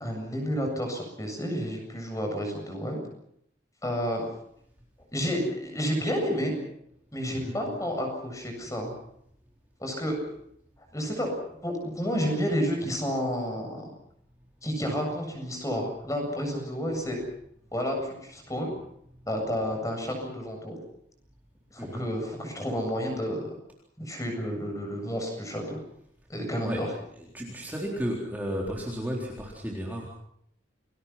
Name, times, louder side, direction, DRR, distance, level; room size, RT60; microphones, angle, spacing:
voice 1, 0.0-3.0 3.8-4.3 5.1-6.5 7.1-8.9 9.8-10.2 10.9-13.8 14.6-17.2 17.7-18.7 19.3-20.8 21.7-23.4 24.0-25.8 26.3-26.9, equal, 15° left, 3 dB, 7.8 m, -30 dB
voice 2, 21.8-22.1 26.6-26.9 27.3-30.1, equal, 10° right, -2 dB, 4.0 m, -33 dB
29.5 x 21.5 x 5.9 m, 0.71 s
head